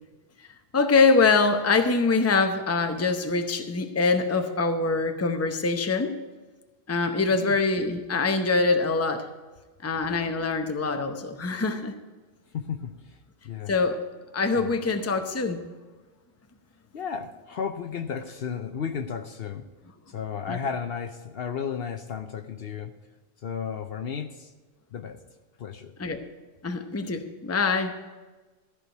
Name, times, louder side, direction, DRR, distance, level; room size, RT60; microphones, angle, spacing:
voice 1, 0.7-6.2 6.9-9.3 9.8-11.9 13.7-14.0 14.3-15.6 20.5-20.6 26.0-26.2 26.6-27.9, left 4 dB, 15° left, 7 dB, 0.7 m, -24 dB
voice 2, 7.3-7.6 12.5-13.2 13.4-13.7 14.6-14.7 16.9-19.7 20.1-22.9 23.4-24.5 24.9-25.2 25.6-25.9, left 7 dB, 60° left, 8 dB, 0.8 m, -33 dB
14.0 x 4.9 x 9.0 m, 1.3 s
omnidirectional pair, 1.2 m